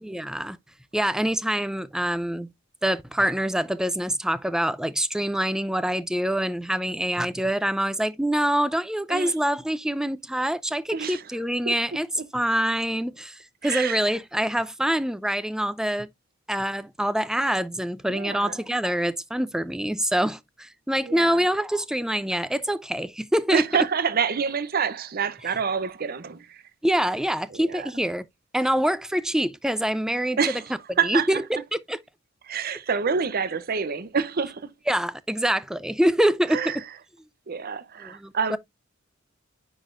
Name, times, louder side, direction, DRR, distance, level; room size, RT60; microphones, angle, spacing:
voice 1, 0.0-0.6 0.9-2.5 2.8-12.1 12.3-16.1 16.5-23.6 26.8-28.2 28.5-30.4 31.0-32.0 34.9-36.7 38.0-38.6, right 1 dB, 5° right, 0.4 m, -25 dB
voice 2, 10.9-11.2 11.7-11.8 13.6-14.0 18.1-18.6 21.0-21.4 23.5-26.6 27.5-27.9 30.4-31.4 32.4-34.7 36.5-36.8 37.5-38.6, right 6 dB, 50° right, 0.7 m, -27 dB
9.6 x 4.1 x 2.5 m
head